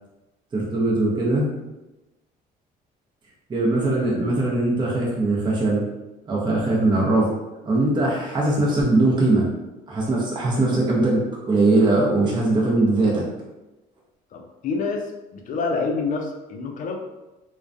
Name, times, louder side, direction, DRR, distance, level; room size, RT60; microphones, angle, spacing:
voice 1, 0.5-1.5 3.5-5.8 6.3-7.3 7.6-9.5 9.9-11.2 11.5-13.2, right 2 dB, 25° right, -4 dB, 0.6 m, -20 dB
voice 2, 14.3-17.0, left 4 dB, 50° left, 3 dB, 0.4 m, -27 dB
2.3 x 2.1 x 2.5 m, 1.0 s
cardioid pair, 110°, 17 cm